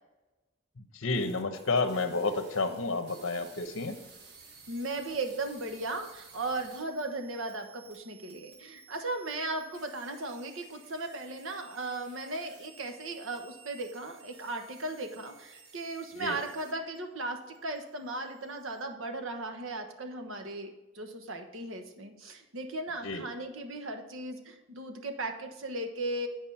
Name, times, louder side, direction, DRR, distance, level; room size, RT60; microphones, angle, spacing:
voice 1, 0.8-4.0 16.2-16.4 23.0-23.2, left 3 dB, 70° left, 8 dB, 0.9 m, -30 dB
sound 1, 1.1-17.0 17.3-18.8, right 4 dB, 50° right, 1.3 m, -55 dB
voice 2, 4.7-26.3, right 2 dB, 75° right, 5 dB, 1.2 m, -37 dB
10.5 x 4.9 x 5.7 m, 1.0 s
head